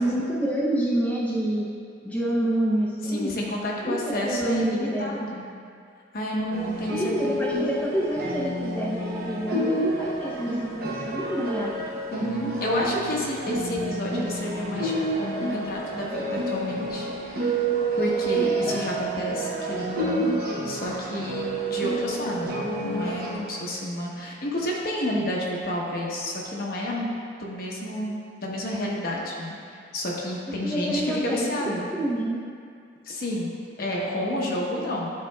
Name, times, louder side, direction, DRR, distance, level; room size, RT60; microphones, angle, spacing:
voice 1, 0.0-1.6 2.0-3.4 3.8-4.0 4.2-5.3 6.9-11.7 30.6-32.4, right 1 dB, 5° left, -8 dB, 0.6 m, -27 dB
voice 2, 3.1-5.5 6.1-7.6 12.1-17.6 18.0-20.3 20.6-27.1 27.4-31.9 33.0-33.5 33.8-35.1, left 1 dB, 50° left, -3 dB, 0.9 m, -30 dB
sound 1, 6.5-23.4, right 2 dB, 50° right, 0.8 m, -29 dB
10.5 x 4.3 x 2.2 m, 2.3 s
head